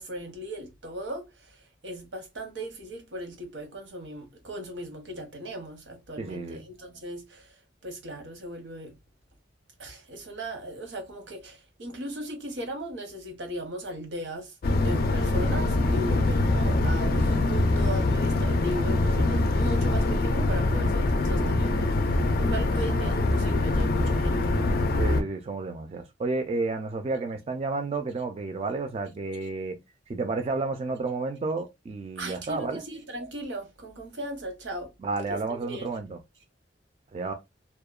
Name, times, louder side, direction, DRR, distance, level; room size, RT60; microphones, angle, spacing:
voice 1, 0.0-1.6 1.8-7.6 7.8-8.9 9.8-14.5 14.8-24.6 32.2-34.9 35.3-35.9, right 1 dB, 85° right, 0.8 m, -38 dB
voice 2, 6.2-6.6 16.1-16.3 25.0-29.8 30.1-32.8 35.0-36.2 37.1-37.3, right 3 dB, 35° right, 0.3 m, -31 dB
sound 1, 14.6-25.2, left 2 dB, 55° left, 0.3 m, -24 dB
2.7 x 2.1 x 2.3 m
head